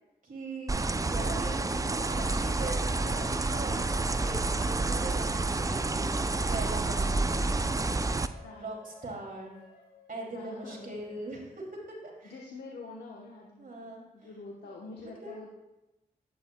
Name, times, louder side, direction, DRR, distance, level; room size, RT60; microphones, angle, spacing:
voice 1, 0.2-7.5 8.6-9.6 10.1-12.3 13.6-14.0 14.6-14.7 15.2-15.4, right 2 dB, 55° right, -1 dB, 2.6 m, -41 dB
sound 1, 0.7-8.3, right 3 dB, 20° right, 0.4 m, -29 dB
voice 2, 6.9-7.2 8.4-8.8 10.3-10.9 12.2-15.5, left 3 dB, 80° left, -2 dB, 1.0 m, -46 dB
sound 2, 7.7-12.2, left 4 dB, 65° left, 2.0 m, -57 dB
11.0 x 8.7 x 2.2 m, 0.98 s
supercardioid pair, 40°, 17 cm